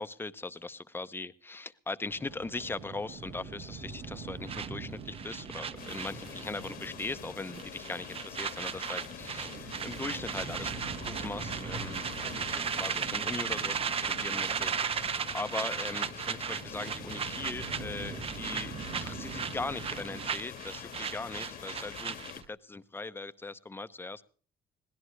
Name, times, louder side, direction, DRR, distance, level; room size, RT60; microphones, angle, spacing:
voice 1, 0.0-10.7 11.0-24.2, left 3 dB, 15° left, 13 dB, 0.7 m, -40 dB
sound 1, 2.1-20.3, right 4 dB, 80° right, 3.5 m, -45 dB
sound 2, 4.5-6.7 7.0-7.3 7.6-22.5, right 7 dB, 35° right, 0.7 m, -36 dB
sound 3, 5.8-22.4, left 9 dB, 65° left, 1.4 m, -46 dB
22.5 x 17.0 x 3.2 m, 0.41 s
cardioid pair, 110°, 17 cm